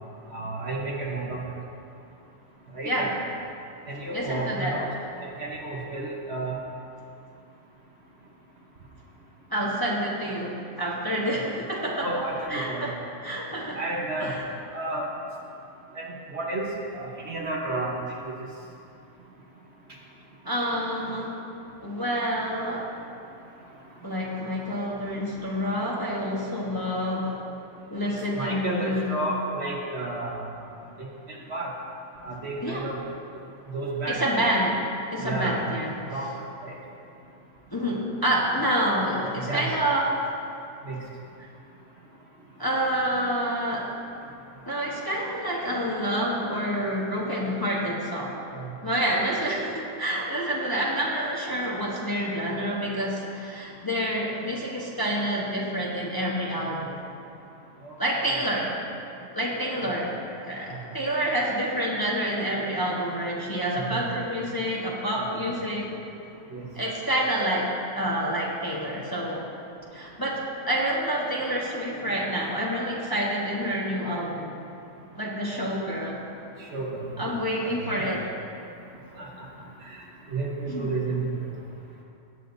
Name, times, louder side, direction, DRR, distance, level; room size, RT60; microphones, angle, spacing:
voice 1, 0.3-1.4 2.7-3.2 3.9-4.9 5.2-6.6 11.2-11.4 12.0-12.9 13.7-14.3 14.7-15.1 15.9-16.7 16.9-17.9 18.2-18.3 28.0-30.4 31.0-31.7 32.2-33.0 33.7-34.2 35.2-35.6 36.0-36.3 36.6-36.8 39.4-39.7 40.8-41.0 48.6-48.7 57.8-57.9 59.8-59.9 63.9-64.0 65.3-65.4 66.5-66.6 75.5-75.7 76.7-77.3 77.6-77.9 79.1-79.5 79.9-80.0 80.3-81.2, right 2 dB, 50° right, -3 dB, 1.3 m, -32 dB
voice 2, 4.1-4.7 9.5-12.1 12.5-13.0 13.2-13.8 14.2-14.4 20.4-21.4 21.8-22.9 24.0-27.4 27.9-29.3 32.6-32.8 34.1-34.8 35.1-36.0 37.7-40.2 42.6-43.9 44.6-48.4 48.8-57.0 58.0-58.7 59.3-65.9 66.7-69.4 69.9-74.6 75.2-76.3 77.2-78.3 80.7-80.9, equal, 15° left, -4 dB, 1.1 m, -28 dB
17.5 x 8.6 x 2.7 m, 2.7 s
omnidirectional pair, 1.6 m